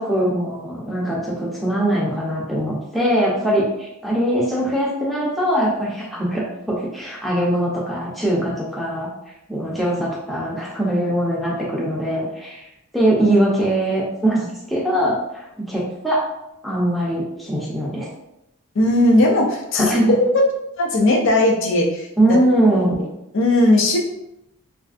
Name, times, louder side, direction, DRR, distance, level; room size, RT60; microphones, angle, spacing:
voice 1, 0.0-9.1 9.5-12.7 12.9-16.2 16.6-18.1 19.7-20.1 22.2-23.0, right 1 dB, ahead, -6 dB, 0.6 m, -21 dB
voice 2, 18.8-20.2 20.8-22.1 22.7-23.1 23.3-24.0, left 1 dB, 55° left, 0 dB, 0.5 m, -17 dB
3.3 x 2.5 x 2.4 m, 0.87 s
head